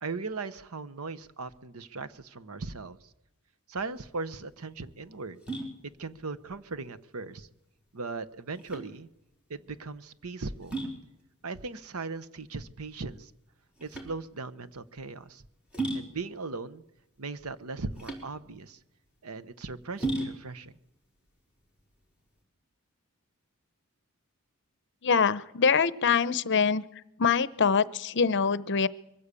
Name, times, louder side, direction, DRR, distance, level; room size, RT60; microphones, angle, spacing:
voice 1, 0.0-3.0 3.7-5.4 6.0-7.5 7.9-9.1 9.5-10.8 11.4-13.3 13.8-15.4 15.9-16.8 17.2-18.8 19.2-20.8, right 3 dB, 70° right, 14 dB, 1.0 m, -38 dB
sound 1, 3.9-22.4, right 2 dB, 5° right, 4.3 m, -39 dB
voice 2, 25.0-26.8 27.2-28.9, left 6 dB, 55° left, 16 dB, 0.8 m, -24 dB
23.0 x 15.5 x 8.4 m, 0.85 s
head